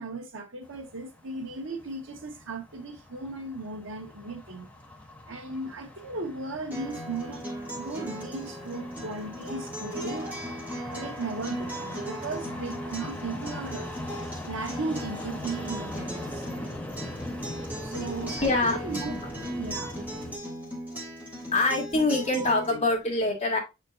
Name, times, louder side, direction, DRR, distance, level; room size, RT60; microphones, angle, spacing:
voice 1, 0.0-4.7 5.3-7.5 7.7-10.3 10.9-13.9 14.4-16.5 17.8-19.2 19.5-19.9, right 3 dB, 70° right, 1.3 m, -36 dB
sound 1, 0.6-20.4, left 1 dB, 5° left, 0.8 m, -41 dB
Acoustic guitar, 6.7-22.7, right 1 dB, 10° right, 2.1 m, -38 dB
voice 2, 18.4-19.2 21.5-23.6, left 2 dB, 30° left, 2.3 m, -25 dB
8.1 x 4.4 x 2.6 m
head